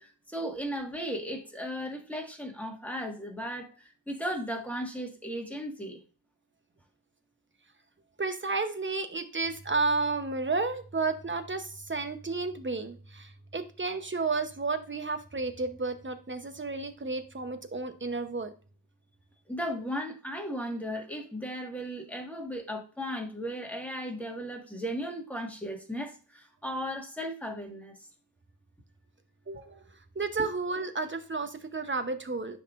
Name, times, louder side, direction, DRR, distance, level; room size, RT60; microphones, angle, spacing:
voice 1, 0.0-6.0 19.5-28.0, equal, 5° left, 1 dB, 1.7 m, -36 dB
voice 2, 8.2-18.5 29.5-32.6, right 3 dB, 30° right, 8 dB, 0.9 m, -32 dB
9.9 x 3.8 x 2.5 m, 0.37 s
wide cardioid pair, 65°, 41 cm